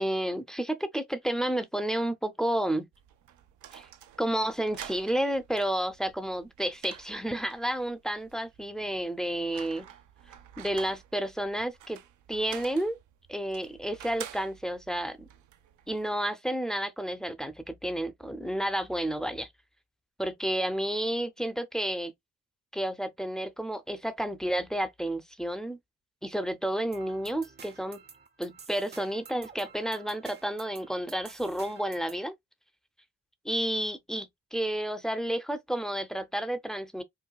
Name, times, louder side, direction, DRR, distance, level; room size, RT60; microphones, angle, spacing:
voice 1, 0.0-2.9 3.7-3.9 4.2-9.9 10.6-12.0 12.3-13.0 13.3-15.3 15.9-19.5 20.2-22.1 22.7-25.8 26.2-28.0 28.4-32.3 33.4-37.0, right 1 dB, ahead, 0.6 m, -31 dB
sound 1, 2.9-16.1, right 10 dB, 75° right, 0.7 m, -49 dB
sound 2, 26.9-32.3, right 6 dB, 35° right, 0.7 m, -51 dB
4.6 x 2.3 x 2.2 m
cardioid pair, 90°, 30 cm